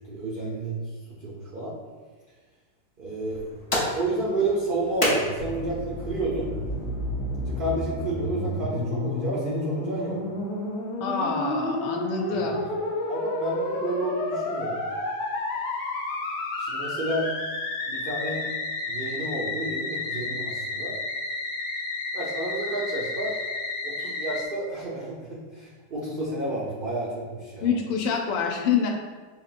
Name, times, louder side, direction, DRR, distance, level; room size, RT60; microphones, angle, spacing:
voice 1, 0.1-0.8 1.2-1.7 3.0-3.5 3.9-6.5 7.5-10.2 12.3-14.8 16.6-17.3 17.8-18.5 18.9-21.0 22.1-23.4 23.8-27.7, right 2 dB, 75° right, -6 dB, 0.4 m, -31 dB
sound 1, 3.2-8.3, left 1 dB, 50° left, 0.4 m, -33 dB
Musical instrument, 5.4-24.4, left 2 dB, 70° left, 1.1 m, -31 dB
voice 2, 11.0-12.6 27.6-28.9, left 6 dB, 90° left, 1 dB, 1.2 m, -26 dB
5.1 x 2.8 x 2.5 m, 1.4 s
omnidirectional pair, 1.8 m